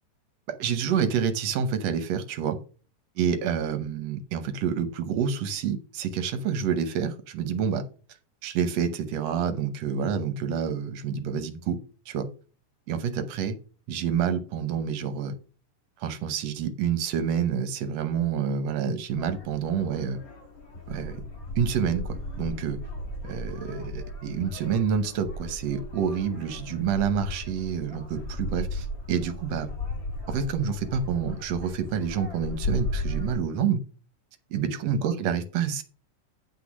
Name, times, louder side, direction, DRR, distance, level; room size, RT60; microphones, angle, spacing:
voice 1, 0.6-2.6 3.2-7.8 8.4-11.8 12.1-12.3 12.9-13.6 13.9-15.3 16.0-20.2 20.9-21.2 21.6-22.8 23.2-29.7 30.3-33.8 34.5-35.8, right 7 dB, 70° right, 10 dB, 1.7 m, -28 dB
sound 1, 19.1-33.4, left 1 dB, 30° left, 2.0 m, -36 dB
9.1 x 4.0 x 6.1 m, 0.37 s
omnidirectional pair, 3.8 m